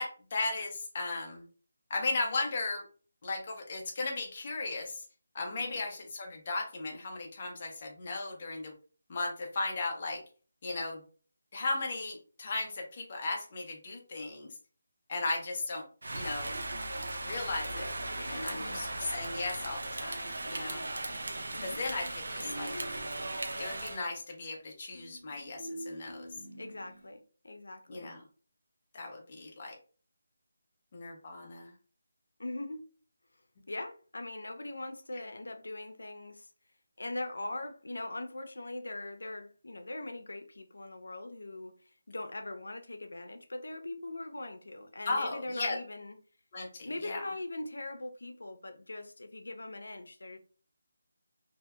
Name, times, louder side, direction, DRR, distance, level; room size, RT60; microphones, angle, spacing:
voice 1, 0.0-1.4 1.9-2.9 3.2-5.0 5.3-8.7 9.1-10.2 10.6-11.0 11.5-14.5 15.1-15.8 16.1-16.5 17.2-17.9 18.2-20.9 21.6-22.7 23.6-26.3 27.9-28.2 28.9-29.7 30.9-31.7 45.1-45.8 46.5-47.3, left 3 dB, 25° left, 0.5 m, -36 dB
Rain, 16.0-24.0, right 2 dB, 65° right, 0.4 m, -37 dB
voice 2, 18.5-18.9 21.5-21.8 26.6-28.1 32.4-32.9 33.7-36.5 37.0-46.2 46.8-50.4, left 2 dB, 90° left, 0.5 m, -41 dB
sound 1, 22.4-23.7 24.9-27.1, right 1 dB, 10° right, 1.1 m, -46 dB
2.6 x 2.1 x 2.3 m
figure-of-eight pair, 175°, 0 cm